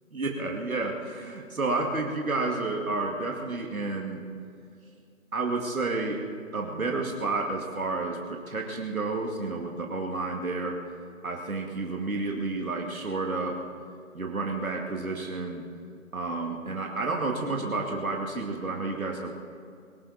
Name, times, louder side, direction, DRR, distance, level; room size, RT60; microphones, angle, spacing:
voice 1, 0.1-4.2 5.3-6.2 6.5-10.8 11.2-13.6 14.1-15.6 16.1-19.3, right 3 dB, 90° right, 0 dB, 2.4 m, -30 dB
23.5 x 12.5 x 4.3 m, 2.4 s
figure-of-eight pair, 145°, 41 cm